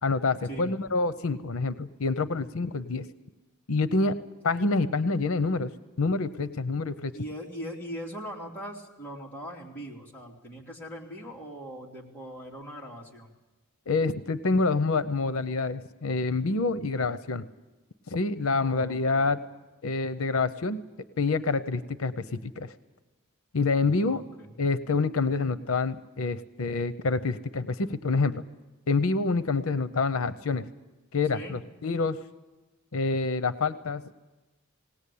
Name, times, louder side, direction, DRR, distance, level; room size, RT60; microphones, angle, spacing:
voice 1, 0.0-3.0 3.7-4.1 4.4-5.7 6.0-7.1 13.9-17.4 18.1-19.4 19.8-20.8 21.2-22.7 23.5-24.2 24.6-28.3 28.9-30.7 31.1-32.2 32.9-34.0, left 3 dB, 85° left, 13 dB, 0.7 m, -27 dB
voice 2, 7.1-13.3 18.6-19.3 24.0-24.5 31.3-31.6, equal, 10° left, -4 dB, 3.0 m, -40 dB
19.5 x 18.5 x 8.5 m, 1.1 s
head